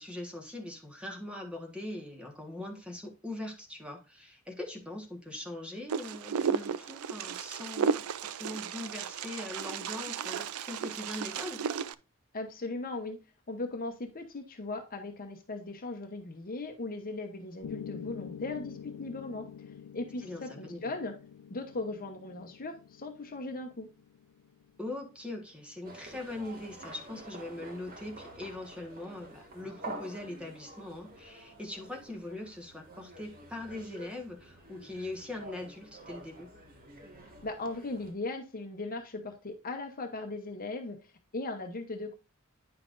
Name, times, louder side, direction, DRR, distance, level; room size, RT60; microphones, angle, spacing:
voice 1, 0.0-11.6 20.2-20.9 24.8-36.5, left 2 dB, 5° right, 1.4 m, -41 dB
Wind, 5.9-11.9, right 6 dB, 75° right, 0.4 m, -34 dB
voice 2, 12.3-13.2 13.5-19.5 19.9-21.1 21.5-23.9 37.4-41.0 41.3-42.1, left 2 dB, 40° left, 0.9 m, -38 dB
Piano, 17.6-25.7, left 7 dB, 75° left, 0.4 m, -47 dB
sound 1, 25.8-38.1, right 2 dB, 40° right, 1.8 m, -48 dB
9.5 x 5.8 x 2.6 m
head